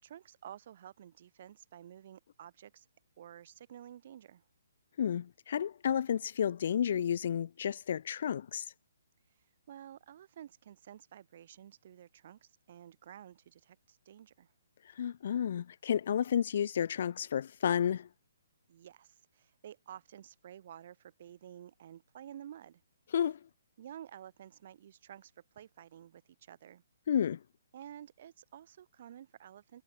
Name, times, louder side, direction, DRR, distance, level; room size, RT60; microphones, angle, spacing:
voice 1, 0.0-2.9 3.2-4.5 9.2-14.5 18.7-22.8 23.8-26.8 27.7-29.8, right 10 dB, 50° right, 6.9 m, -52 dB
voice 2, 5.0-8.7 15.0-18.1 23.1-23.4 27.1-27.4, left 9 dB, 55° left, 1.8 m, -31 dB
hypercardioid pair, 145°, 0 cm